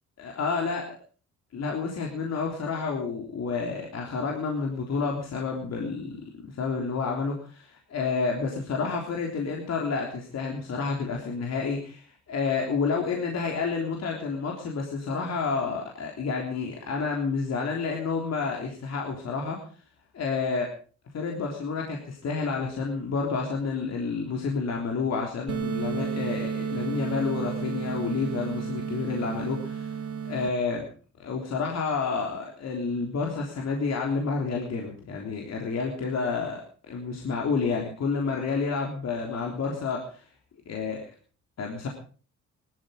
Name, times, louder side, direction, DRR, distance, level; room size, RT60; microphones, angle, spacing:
voice 1, 0.2-0.8 1.5-6.2 6.5-19.6 20.1-20.7 21.1-29.9 30.2-30.9 31.2-36.6 36.9-40.3 40.7-41.0 41.6-41.9, left 4 dB, 60° left, 1 dB, 3.6 m, -29 dB
sound 1, 25.5-30.5, right 6 dB, 50° right, 1.8 m, -32 dB
18.5 x 13.5 x 5.3 m, 0.40 s
cardioid pair, 90°, 30 cm